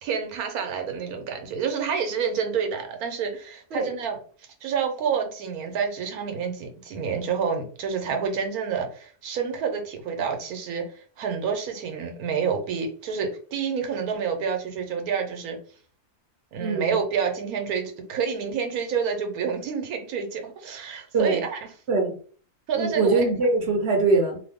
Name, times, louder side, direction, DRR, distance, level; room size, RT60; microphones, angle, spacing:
voice 1, 0.0-4.2 4.6-15.6 16.5-21.6 22.7-23.3, right 6 dB, 80° right, 4 dB, 1.3 m, -28 dB
voice 2, 16.6-17.0 21.1-21.4 21.9-22.1 22.8-24.4, right 3 dB, 55° right, 1 dB, 0.9 m, -22 dB
2.9 x 2.3 x 3.4 m, 0.43 s
omnidirectional pair, 1.6 m